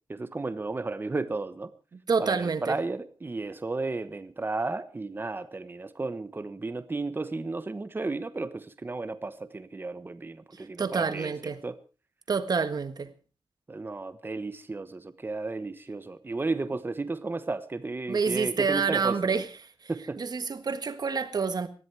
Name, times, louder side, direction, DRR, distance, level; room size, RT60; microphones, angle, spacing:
voice 1, 0.1-1.7 2.2-11.3 11.6-11.8 13.7-19.4 19.9-20.2, right 3 dB, 25° right, 1.1 m, -33 dB
voice 2, 2.1-2.7 10.5-11.6 12.3-13.1 18.1-19.4 19.8-19.9 20.2-21.7, right 5 dB, 45° right, 1.5 m, -28 dB
19.5 x 14.0 x 4.7 m
wide cardioid pair, 170°, 9 cm